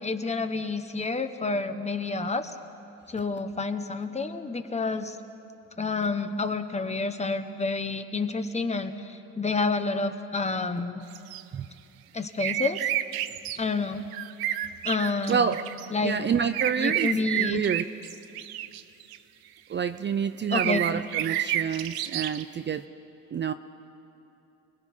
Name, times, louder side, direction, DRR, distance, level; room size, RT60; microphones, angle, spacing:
voice 1, 0.0-2.6 3.1-5.2 5.8-11.0 12.1-12.9 13.6-14.1 14.8-15.5 15.9-16.2 16.8-17.6 20.5-20.8, left 3 dB, 20° left, 8 dB, 1.1 m, -29 dB
sound 1, 11.1-11.4 12.4-13.6 14.1-15.9 16.5-19.2 20.5-22.4, right 13 dB, 90° right, 0.8 m, -30 dB
voice 2, 15.3-15.6 16.0-17.9 19.7-22.8 23.3-23.5, right 7 dB, 30° right, 10 dB, 0.5 m, -28 dB
29.0 x 20.5 x 5.6 m, 3.0 s
cardioid pair, 115°, 35 cm